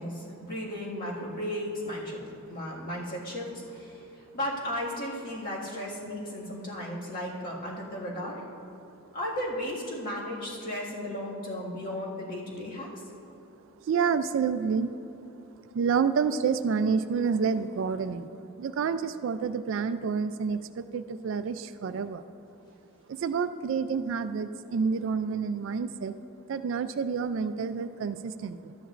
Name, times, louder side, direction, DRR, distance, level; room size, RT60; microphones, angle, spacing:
voice 1, 0.0-2.2 2.5-8.4 9.1-12.9, left 1 dB, 40° left, -5 dB, 1.8 m, -35 dB
voice 2, 13.9-14.9 15.7-18.3 18.6-22.2 23.1-26.1 26.5-28.8, right 6 dB, 60° right, 11 dB, 0.3 m, -28 dB
13.0 x 10.0 x 2.5 m, 2.8 s
head